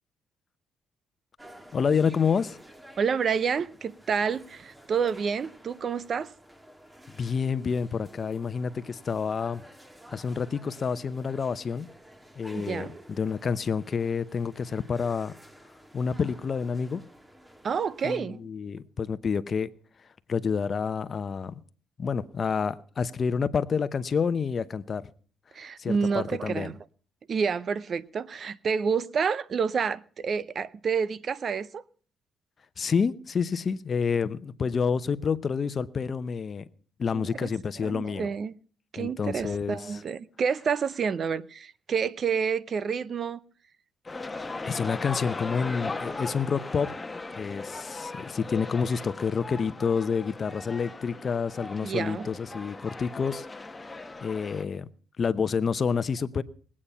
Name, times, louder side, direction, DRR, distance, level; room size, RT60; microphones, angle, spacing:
sound 1, 1.4-18.2, right 1 dB, 10° right, 1.5 m, -51 dB
voice 1, 1.7-2.6 7.2-9.6 10.1-11.9 12.4-15.3 15.9-17.0 18.0-19.7 20.3-21.5 22.0-25.0 25.8-26.7 32.8-36.6 37.0-38.3 39.0-40.0 44.1-44.2 44.7-46.9 47.4-53.5 53.8-54.9 55.2-56.4, left 6 dB, 45° left, 0.7 m, -28 dB
voice 2, 3.0-6.3 12.5-13.0 17.6-18.4 25.5-26.7 27.3-31.8 37.1-37.5 37.8-38.5 38.9-43.4 51.8-52.3, right 6 dB, 50° right, 0.6 m, -29 dB
sound 2, 44.1-54.6, left 3 dB, 20° left, 1.0 m, -38 dB
20.5 x 8.6 x 5.5 m
cardioid pair, 90°, 0 cm